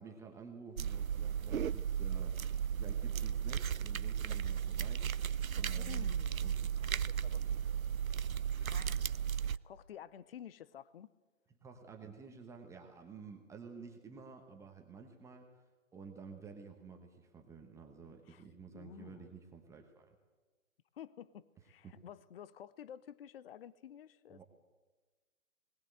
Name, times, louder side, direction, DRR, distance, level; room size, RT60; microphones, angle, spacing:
voice 1, 0.0-5.0 5.5-6.1 6.4-6.9 7.5-7.8 9.4-9.6 11.6-15.5 15.9-20.1 21.8-21.9 24.3-24.4, right 5 dB, 5° right, 3 dB, 1.1 m, -52 dB
Binoculars and dangling strap - Foley - Handling and moving, 0.8-9.6, right 8 dB, 85° right, 0.7 m, -35 dB
voice 2, 5.7-6.5 6.9-7.4 8.6-11.1 18.3-18.4 18.7-19.3 20.9-24.4, left 9 dB, 45° left, 18 dB, 0.8 m, -52 dB
20.0 x 19.5 x 7.9 m, 1.3 s
figure-of-eight pair, 135°, 41 cm